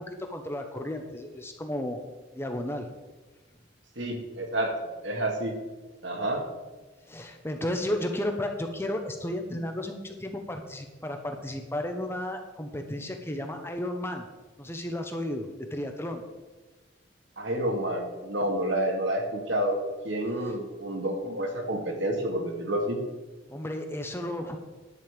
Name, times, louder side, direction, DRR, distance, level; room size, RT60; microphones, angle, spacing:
voice 1, 0.0-2.0 2.3-2.9 7.1-14.3 14.6-16.2 20.4-20.5 23.5-24.6, left 1 dB, 10° left, 4 dB, 0.9 m, -33 dB
voice 2, 4.0-4.8 5.0-5.5 6.0-6.5 17.4-19.8 20.0-23.0, right 1 dB, 65° right, 2 dB, 2.3 m, -29 dB
11.0 x 5.6 x 8.6 m, 1.2 s
head